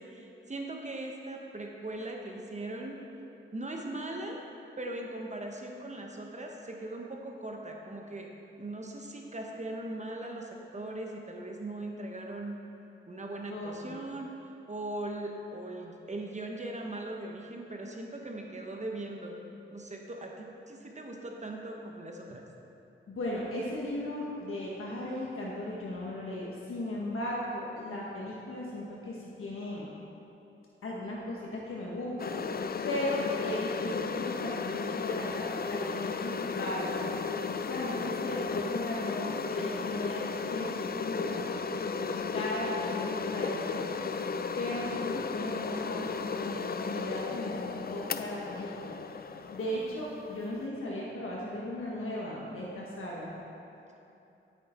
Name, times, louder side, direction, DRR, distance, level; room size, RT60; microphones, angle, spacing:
voice 1, 0.0-3.0 3.5-4.4 4.8-8.3 8.6-12.6 13.1-14.3 14.7-19.4 19.7-22.4, right 1 dB, 35° right, 1 dB, 1.1 m, -39 dB
voice 2, 13.5-13.9 23.1-29.9 30.8-32.3 32.8-37.2 37.6-41.4 41.7-43.9 44.6-49.1 49.5-53.3, left 1 dB, 85° left, -5 dB, 1.3 m, -36 dB
sound 1, 32.2-50.7, left 5 dB, 45° left, 0.5 m, -35 dB
10.0 x 8.8 x 4.4 m, 2.8 s
wide cardioid pair, 85°, 21 cm